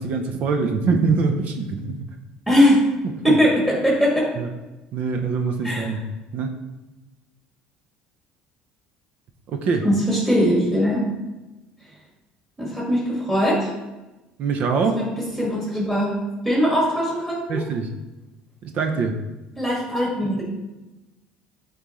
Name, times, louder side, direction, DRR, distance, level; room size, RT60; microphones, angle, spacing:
voice 1, 0.0-2.0 3.3-3.4 4.4-4.5 4.9-6.0 6.3-6.5 9.5-9.8 14.4-15.0 17.5-17.9 18.6-19.2, right 4 dB, 55° right, 4 dB, 0.7 m, -23 dB
voice 2, 2.5-2.8 3.2-4.3 5.6-5.8 9.8-11.1 12.6-13.7 15.0-16.2 16.4-17.6 19.6-20.4, equal, 10° right, -5 dB, 1.9 m, -20 dB
7.9 x 4.0 x 3.1 m, 1.1 s
supercardioid pair, 90°, 3 cm